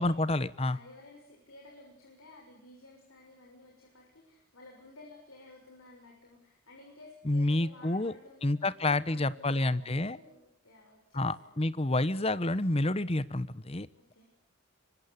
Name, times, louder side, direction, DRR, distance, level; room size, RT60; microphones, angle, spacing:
voice 1, 0.0-0.8 7.3-8.1 8.4-10.2 11.1-13.9, left 2 dB, 30° left, 16 dB, 1.0 m, -29 dB
voice 2, 0.6-11.6 13.9-14.2, left 2 dB, 90° left, 0 dB, 6.6 m, -54 dB
26.5 x 24.0 x 8.3 m, 0.70 s
head